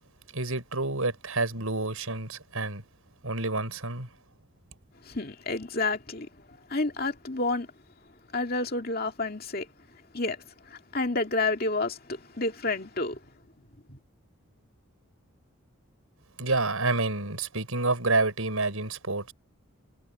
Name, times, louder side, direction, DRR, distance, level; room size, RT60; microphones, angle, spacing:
voice 1, 0.3-2.8 3.2-4.1 16.4-19.3, right 3 dB, 85° right, 5.8 m, -28 dB
voice 2, 5.1-6.3 6.7-7.7 8.3-9.7 10.1-13.2 13.9-14.0, left 3 dB, 45° left, 2.5 m, -30 dB
head